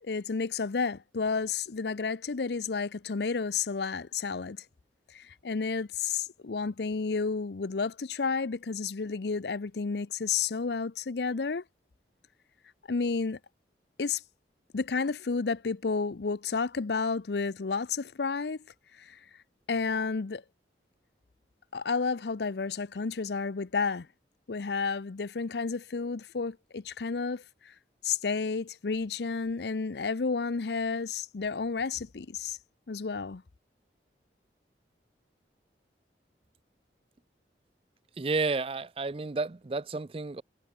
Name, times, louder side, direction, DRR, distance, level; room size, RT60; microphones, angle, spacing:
voice 1, 0.0-4.6 5.1-11.6 12.9-13.4 14.0-14.2 14.7-18.6 18.9-19.2 19.7-20.4 21.7-24.1 24.5-27.7 28.0-32.6 32.9-33.4, left 4 dB, 70° left, 0.6 m, -31 dB
voice 2, 38.2-40.4, right 3 dB, 30° right, 0.4 m, -31 dB
head